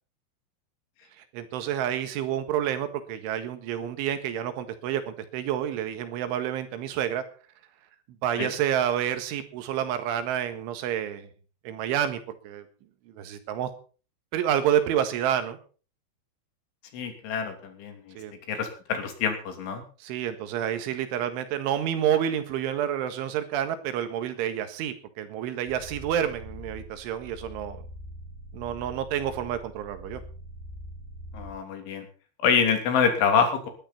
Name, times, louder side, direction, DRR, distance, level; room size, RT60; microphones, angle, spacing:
voice 1, 1.3-7.2 8.2-11.3 11.7-12.7 13.1-13.7 14.3-15.6 18.2-18.3 20.0-27.8 28.5-30.2, right 10 dB, 85° right, 9 dB, 4.1 m, -29 dB
voice 2, 16.9-18.2 18.5-19.8 31.3-32.1 32.4-33.7, left 6 dB, 80° left, 5 dB, 5.3 m, -26 dB
sound 1, 25.7-31.5, equal, 15° left, 6.8 m, -43 dB
20.0 x 12.0 x 4.3 m, 0.38 s
omnidirectional pair, 5.4 m